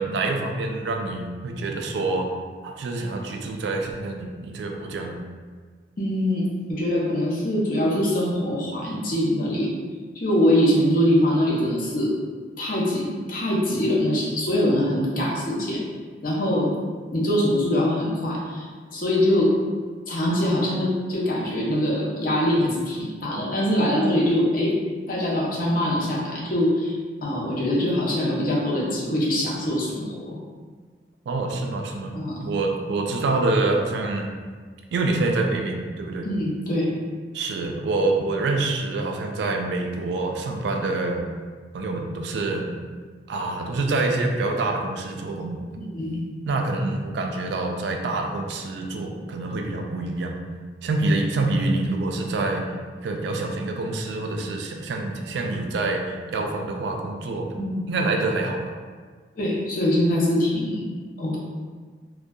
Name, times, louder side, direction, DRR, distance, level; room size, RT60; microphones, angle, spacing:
voice 1, 0.0-2.3 2.6-5.2 31.3-32.1 32.4-34.3 34.9-36.3 37.3-41.2 41.7-42.7 43.3-45.6 46.5-50.4 50.8-52.7 53.0-57.5 57.9-58.7, right 2 dB, 75° right, 3 dB, 0.3 m, -26 dB
voice 2, 6.0-9.7 10.1-12.1 12.6-15.8 16.2-16.7 17.1-19.5 20.1-24.7 25.1-27.0 27.2-30.3 32.1-32.5 36.2-36.9 45.8-46.2 57.5-57.8 59.4-61.4, left 1 dB, 50° left, -5 dB, 0.6 m, -23 dB
2.6 x 2.2 x 2.3 m, 1.5 s
head